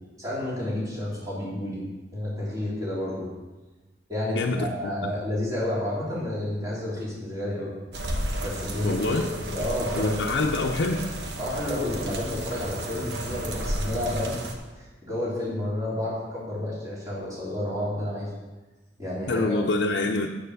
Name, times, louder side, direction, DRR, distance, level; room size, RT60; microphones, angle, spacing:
voice 1, 0.2-1.8 2.1-3.3 4.1-7.7 8.4-10.3 11.4-14.4 14.7-18.3 19.0-19.6, left 1 dB, 20° right, -8 dB, 3.4 m, -30 dB
voice 2, 4.3-4.9 8.8-9.3 10.0-11.1 19.3-20.4, left 2 dB, 85° left, 1 dB, 0.6 m, -26 dB
sound 1, 7.9-14.5, right 1 dB, 70° right, 1.2 m, -33 dB
7.7 x 6.9 x 6.5 m, 1.2 s
head